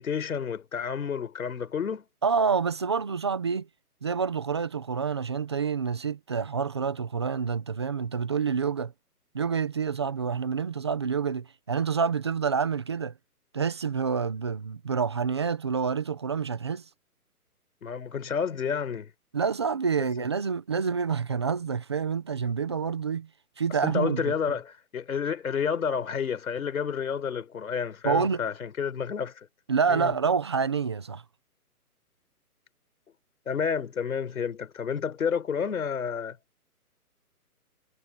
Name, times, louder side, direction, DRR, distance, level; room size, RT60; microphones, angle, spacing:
voice 1, 0.0-2.0 17.8-19.1 23.8-29.5 29.9-30.1 33.5-36.4, left 6 dB, 65° left, 4.3 m, -30 dB
voice 2, 2.2-3.7 4.0-8.9 9.3-13.1 13.5-16.8 19.3-23.3 23.6-24.3 28.0-28.4 29.7-31.2, right 6 dB, 20° right, 0.8 m, -27 dB
hypercardioid pair, 170°, 46 cm